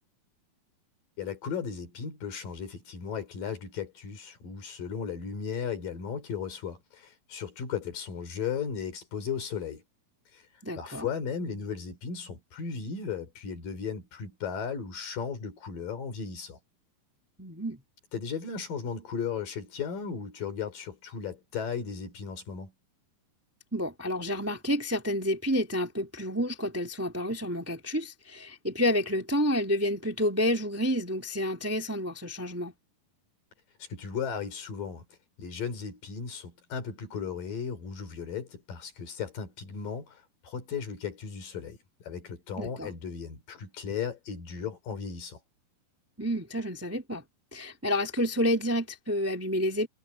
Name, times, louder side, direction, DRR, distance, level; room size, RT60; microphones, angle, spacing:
voice 1, 1.2-9.8 10.3-10.4 10.8-16.6 18.1-22.7 33.8-35.0 35.4-45.4, left 6 dB, 65° left, 5.2 m, -36 dB
voice 2, 10.6-11.1 17.4-17.8 23.7-32.7 42.6-42.9 46.2-47.2 47.5-49.9, equal, 5° right, 2.1 m, -29 dB
omnidirectional pair, 4.3 m